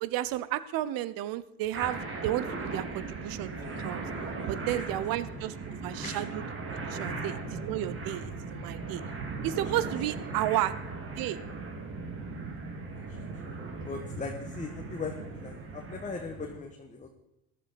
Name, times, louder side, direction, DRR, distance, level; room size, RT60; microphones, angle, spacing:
voice 1, 0.0-2.5 2.7-3.5 3.8-4.0 4.5-9.0 9.4-10.8 11.0-11.4, right 14 dB, 55° right, 17 dB, 0.9 m, -32 dB
sound 1, 1.7-16.6, right 3 dB, 30° right, 2.2 m, -38 dB
voice 2, 3.6-5.0 6.0-6.2 12.9-13.2 13.4-13.5 13.8-17.1, left 4 dB, 20° left, 2 dB, 1.4 m, -40 dB
14.5 x 11.0 x 4.2 m, 0.85 s
supercardioid pair, 105°, 42 cm